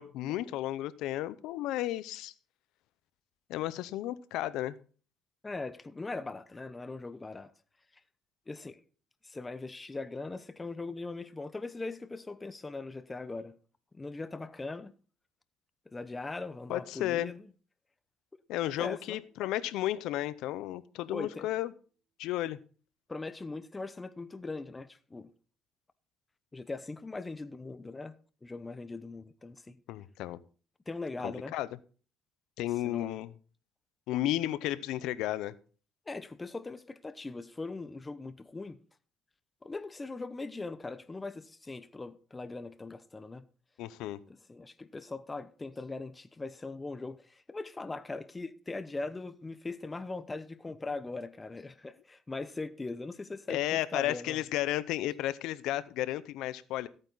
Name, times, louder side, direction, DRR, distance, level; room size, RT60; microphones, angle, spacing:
voice 1, 0.0-2.3 3.5-4.8 16.7-17.3 18.5-21.7 22.2-22.6 29.9-30.4 31.2-31.7 32.6-33.3 34.1-35.5 43.8-44.2 53.5-56.9, left 14 dB, 80° left, 0.7 m, -33 dB
voice 2, 5.4-7.5 8.5-8.8 9.2-13.6 13.9-14.9 15.9-17.5 18.8-19.2 21.1-21.5 23.1-25.3 26.5-28.1 28.4-29.8 30.9-31.5 32.8-33.2 36.1-38.8 39.6-43.5 44.3-54.4, left 3 dB, 15° left, 0.8 m, -40 dB
sound 1, 18.6-20.4, right 5 dB, 10° right, 4.8 m, -62 dB
14.5 x 8.8 x 4.0 m
cardioid pair, 110°, 0 cm